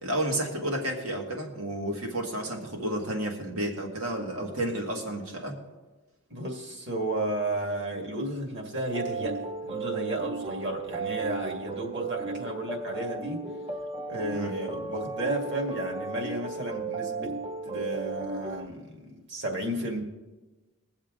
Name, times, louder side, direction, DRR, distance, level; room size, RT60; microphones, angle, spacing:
voice 1, 0.0-5.6 14.3-14.5, right 1 dB, 80° right, 2 dB, 1.9 m, -31 dB
voice 2, 6.3-13.4 14.1-17.4 17.6-20.0, right 1 dB, 55° right, 2 dB, 2.1 m, -33 dB
sound 1, 8.9-18.7, right 4 dB, 25° right, 0.6 m, -35 dB
21.5 x 7.3 x 3.8 m, 1.2 s
head